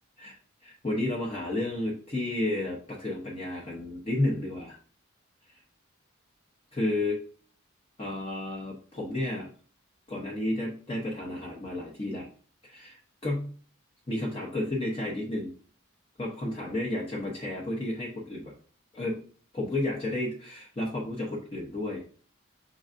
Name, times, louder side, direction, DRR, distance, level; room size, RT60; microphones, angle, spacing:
voice 1, 0.6-4.8 6.7-7.2 8.0-9.5 10.1-12.3 12.6-13.5 14.1-15.5 16.2-18.5 18.9-19.2 19.5-22.0, left 1 dB, 25° left, -4 dB, 0.8 m, -32 dB
5.3 x 3.8 x 2.5 m, 0.42 s
head